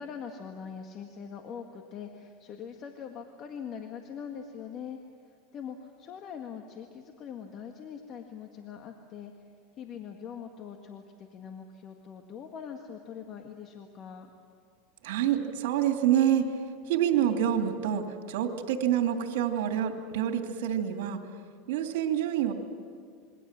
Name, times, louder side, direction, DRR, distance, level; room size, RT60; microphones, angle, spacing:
voice 1, 0.0-5.0 5.5-9.3 9.8-14.3, left 7 dB, 40° left, 4 dB, 1.8 m, -42 dB
voice 2, 15.0-16.5 16.8-21.2 21.7-22.5, right 10 dB, 75° right, 4 dB, 2.8 m, -27 dB
27.0 x 23.0 x 7.5 m, 2.3 s
supercardioid pair, 130°, 0 cm